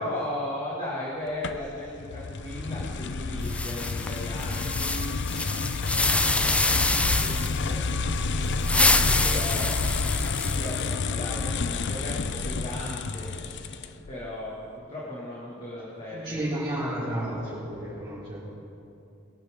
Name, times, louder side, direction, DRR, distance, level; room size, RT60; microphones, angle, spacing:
voice 1, 0.0-7.8 9.2-16.5, left 1 dB, 30° left, -6 dB, 2.3 m, -37 dB
sound 1, 1.4-14.1, left 4 dB, 55° left, 0.6 m, -29 dB
sound 2, 3.4-7.6 8.5-10.8, left 2 dB, 5° left, 0.3 m, -26 dB
voice 2, 16.1-18.5, right 1 dB, 25° right, -13 dB, 4.1 m, -32 dB
21.5 x 11.5 x 3.8 m, 2.6 s
head